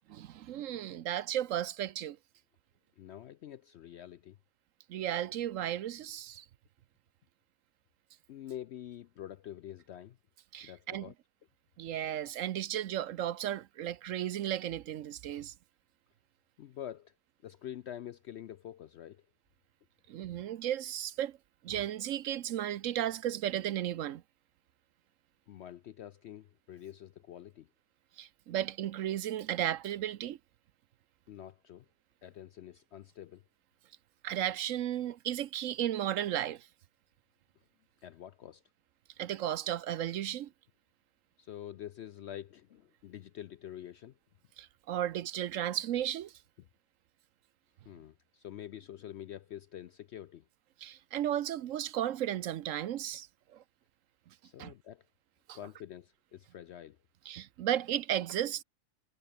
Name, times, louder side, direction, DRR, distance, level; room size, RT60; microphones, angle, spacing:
voice 1, 0.1-2.2 4.9-6.5 10.5-11.1 11.8-15.5 20.1-21.4 21.6-24.2 28.2-30.4 34.2-36.7 39.2-40.5 44.6-46.3 50.8-53.3 53.5-53.6 54.6-54.7 55.5-55.6 57.3-58.6, right 11 dB, 70° right, 1.0 m, -34 dB
voice 2, 3.0-4.4 8.3-10.2 10.6-11.1 16.6-17.1 17.4-19.2 25.5-27.7 31.3-31.9 32.2-33.4 38.0-38.6 41.4-44.2 46.6-46.7 47.9-50.5 54.4-55.1 55.5-57.0, left 11 dB, 70° left, 0.6 m, -46 dB
omnidirectional pair, 1.6 m